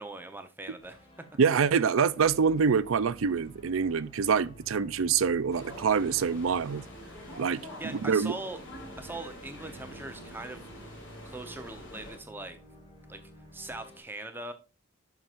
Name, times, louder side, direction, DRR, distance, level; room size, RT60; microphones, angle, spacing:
voice 1, 0.0-1.3 7.8-8.6 9.0-10.9 11.2-12.6 13.1-13.2 13.5-14.5, right 2 dB, 10° right, 0.8 m, -41 dB
sound 1, 0.8-14.0, equal, 25° left, 2.2 m, -52 dB
voice 2, 1.4-6.8 7.4-8.3, right 6 dB, 75° right, 0.5 m, -26 dB
sound 2, 5.5-12.2, equal, 60° left, 4.5 m, -46 dB
11.0 x 5.9 x 2.5 m
head